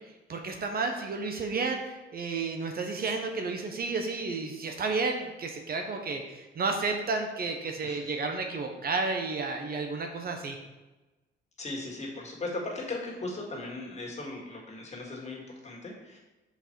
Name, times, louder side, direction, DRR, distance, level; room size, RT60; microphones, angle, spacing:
voice 1, 0.3-10.6, right 3 dB, 50° right, 4 dB, 0.9 m, -32 dB
voice 2, 7.8-8.1 11.6-16.2, left 2 dB, 35° left, -2 dB, 2.0 m, -38 dB
5.7 x 4.6 x 4.5 m, 1.1 s
cardioid pair, 90°, 20 cm